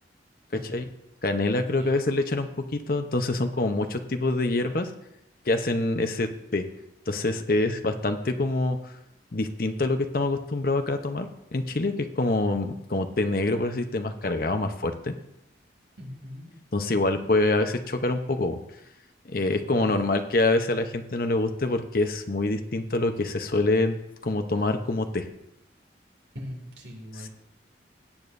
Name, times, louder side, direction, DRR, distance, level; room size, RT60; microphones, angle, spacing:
voice 1, 0.5-0.8 1.8-2.0 16.0-16.7 19.8-20.1 26.3-27.3, equal, 80° right, 0 dB, 2.4 m, -41 dB
voice 2, 1.2-4.9 5.5-6.7 7.1-8.9 9.3-15.1 16.7-18.6 19.2-24.0 24.2-25.3, left 2 dB, 50° left, 6 dB, 0.8 m, -26 dB
17.5 x 8.4 x 2.6 m, 0.86 s
head